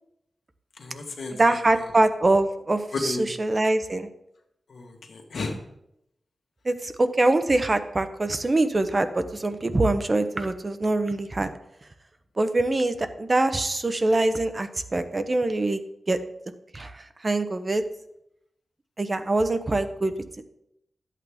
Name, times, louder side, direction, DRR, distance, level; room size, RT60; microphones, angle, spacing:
voice 1, 0.8-1.9 2.9-3.3 4.7-5.6, left 3 dB, 80° left, 3 dB, 1.6 m, -33 dB
voice 2, 1.4-4.1 6.6-11.5 12.4-15.8 16.1-16.2 16.7-17.8 19.0-20.1, right 2 dB, 30° right, 9 dB, 0.7 m, -24 dB
13.0 x 8.3 x 3.5 m, 0.80 s
wide cardioid pair, 135°, 0 cm